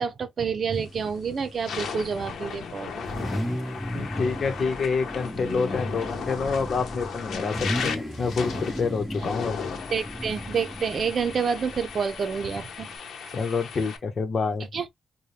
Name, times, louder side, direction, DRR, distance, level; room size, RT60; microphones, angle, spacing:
voice 1, 0.0-3.0 3.5-3.6 3.9-4.1 9.2-9.3 9.9-12.9 14.7-14.9, right 6 dB, 50° right, 0.7 m, -28 dB
sound 1, 0.8-1.0 1.5-14.0, left 6 dB, 85° left, 0.8 m, -36 dB
Car / Idling / Accelerating revving vroom, 0.9-13.0, equal, 5° left, 1.5 m, -35 dB
voice 2, 3.9-9.6 13.3-14.6, left 5 dB, 50° left, 1.0 m, -27 dB
4.2 x 2.3 x 3.3 m
wide cardioid pair, 125°, 0 cm